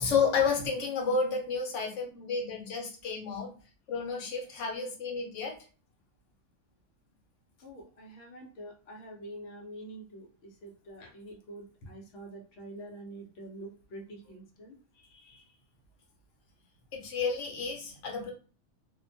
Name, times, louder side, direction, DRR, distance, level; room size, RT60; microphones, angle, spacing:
voice 1, 0.0-3.5 3.9-5.5 11.0-11.1 15.3-15.4 16.9-18.3, left 5 dB, 85° left, 0 dB, 1.0 m, -31 dB
voice 2, 7.6-14.8, right 1 dB, 65° left, 1 dB, 0.8 m, -46 dB
2.5 x 2.1 x 2.5 m, 0.38 s
omnidirectional pair, 1.2 m